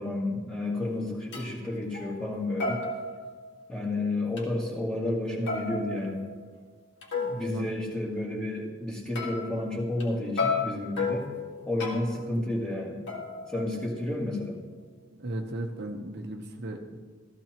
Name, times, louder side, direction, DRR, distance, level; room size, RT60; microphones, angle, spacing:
voice 1, 0.0-2.8 3.7-6.3 7.3-11.3 11.7-13.0 13.5-14.6, left 2 dB, 5° left, -3 dB, 2.0 m, -31 dB
sound 1, 0.7-0.8 1.3-1.5 1.9-2.3 2.6-3.9 4.4-4.5 5.5-7.5 9.2-10.1 10.4-12.3 13.1-14.2, left 4 dB, 60° left, 1.9 m, -33 dB
voice 2, 7.1-7.8 15.2-17.0, right 1 dB, 55° right, 2 dB, 0.9 m, -36 dB
15.0 x 14.5 x 3.0 m, 1.5 s
head